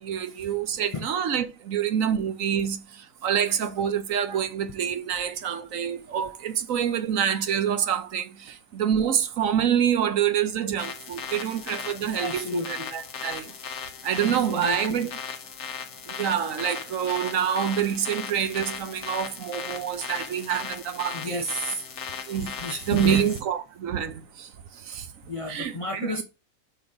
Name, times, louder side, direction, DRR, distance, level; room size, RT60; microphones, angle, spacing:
voice 1, 0.0-2.8 3.2-13.5 14.0-15.1 16.2-21.4 22.3-22.5 22.9-24.5 24.9-25.1 25.5-26.1, right 9 dB, 70° right, 1.2 m, -26 dB
sound 1, 10.8-23.4, left 6 dB, 60° left, 1.2 m, -37 dB
voice 2, 12.2-12.9 14.2-15.0 21.1-21.8 22.6-23.3 25.3-26.2, left 1 dB, 35° left, 0.6 m, -32 dB
5.9 x 4.0 x 4.8 m
omnidirectional pair, 1.4 m